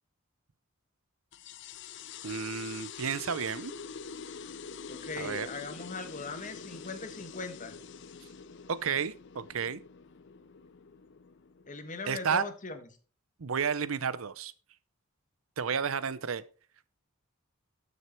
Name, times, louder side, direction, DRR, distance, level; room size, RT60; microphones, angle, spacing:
sound 1, 1.3-12.3, left 6 dB, 60° left, 0.6 m, -46 dB
voice 1, 2.2-3.7 5.2-5.5 8.7-9.8 12.1-12.4 13.4-14.5 15.6-16.4, right 6 dB, 85° right, 0.7 m, -31 dB
voice 2, 4.9-7.7 11.7-12.9, left 3 dB, 40° left, 1.5 m, -40 dB
12.5 x 6.5 x 4.4 m
head